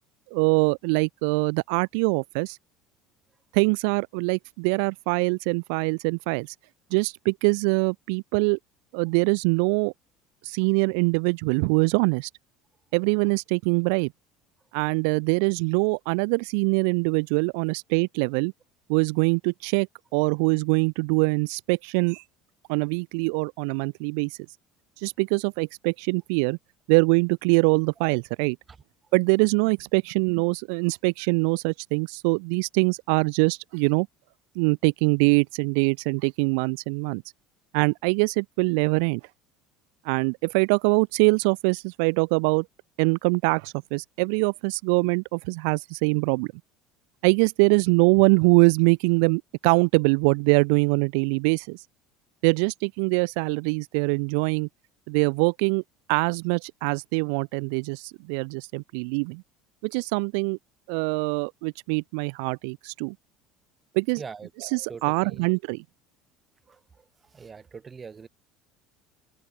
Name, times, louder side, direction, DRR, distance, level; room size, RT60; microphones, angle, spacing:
voice 1, 0.3-2.6 3.5-6.5 6.9-8.6 8.9-9.9 10.4-12.3 12.9-14.1 14.7-18.5 18.9-19.9 20.1-22.2 22.7-24.4 25.0-26.6 26.9-28.6 29.1-34.1 34.6-37.2 37.7-39.2 40.0-42.7 43.0-46.5 47.2-51.9 52.4-54.7 55.1-55.8 56.1-59.4 59.8-60.6 60.9-63.1 63.9-64.2 64.6-65.8, right 38 dB, 80° right, 0.5 m, -23 dB
voice 2, 64.2-64.5 64.9-65.5 66.7-68.3, right 5 dB, 25° right, 3.8 m, -42 dB
open air
supercardioid pair, 115°, 0 cm